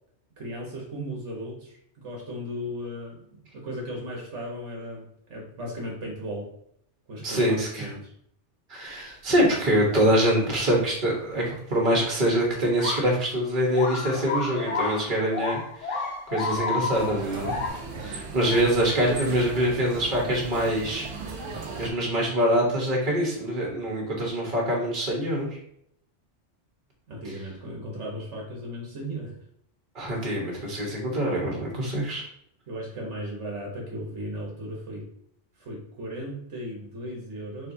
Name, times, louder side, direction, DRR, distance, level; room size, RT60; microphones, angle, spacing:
voice 1, 0.4-6.5 7.1-8.1 27.1-29.4 32.7-35.1 35.6-37.7, equal, 70° right, -2 dB, 1.5 m, -36 dB
voice 2, 7.2-7.9 8.7-16.0 16.3-17.5 18.0-21.1 21.5-25.6 29.9-32.2, equal, 45° right, -2 dB, 1.5 m, -25 dB
sound 1, 12.8-13.2 13.7-17.7, left 4 dB, 85° left, 1.5 m, -31 dB
sound 2, 16.9-21.9, right 3 dB, 90° right, 1.3 m, -37 dB
4.7 x 4.2 x 2.7 m, 0.71 s
omnidirectional pair, 1.2 m